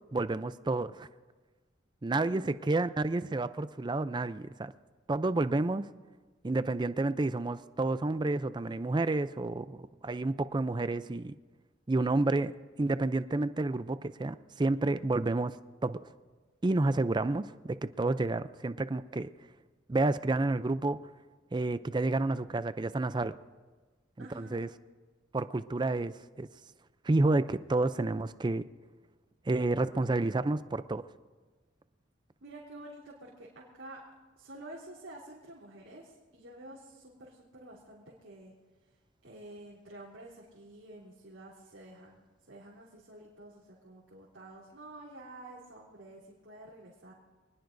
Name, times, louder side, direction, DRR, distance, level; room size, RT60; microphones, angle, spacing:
voice 1, 0.1-1.1 2.0-4.7 5.1-5.9 6.4-11.4 11.9-12.5 12.8-15.6 15.8-16.0 16.6-19.3 19.9-21.0 21.5-23.3 24.2-24.7 25.3-26.5 27.0-28.6 29.5-31.0, right 2 dB, 25° right, 13 dB, 0.4 m, -30 dB
voice 2, 2.1-2.6 9.9-10.4 24.2-24.7 32.4-34.0 34.4-38.5 39.2-42.2 42.5-47.1, right 1 dB, 90° right, -7 dB, 3.5 m, -50 dB
26.5 x 20.0 x 2.6 m, 1.3 s
head